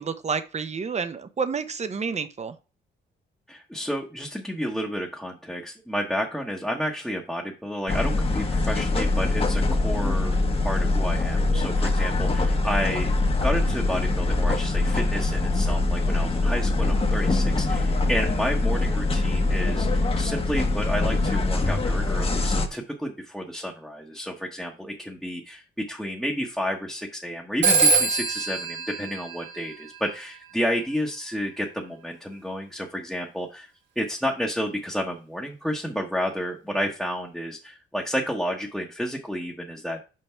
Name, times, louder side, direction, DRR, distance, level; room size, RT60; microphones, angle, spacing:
voice 1, 0.0-2.5, right 5 dB, 35° right, 11 dB, 0.9 m, -29 dB
voice 2, 3.5-13.1 13.4-33.7 34.0-40.0, equal, ahead, 0 dB, 1.2 m, -31 dB
sound 1, 7.9-22.7, left 2 dB, 30° left, 1.2 m, -23 dB
Telephone, 27.6-30.1, right 4 dB, 65° right, 2.4 m, -23 dB
5.8 x 5.2 x 4.5 m, 0.32 s
cardioid pair, 90°, 20 cm